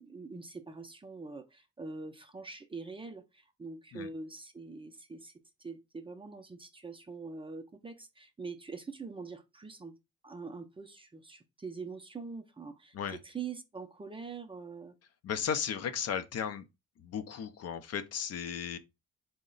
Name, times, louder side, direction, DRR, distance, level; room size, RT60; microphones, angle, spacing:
voice 1, 0.0-5.3 5.6-9.9 10.2-14.9, right 4 dB, 20° right, 0.4 m, -44 dB
voice 2, 15.2-16.7 17.0-18.8, left 7 dB, 55° left, 0.5 m, -35 dB
3.7 x 2.1 x 3.7 m
cardioid pair, 90°, 30 cm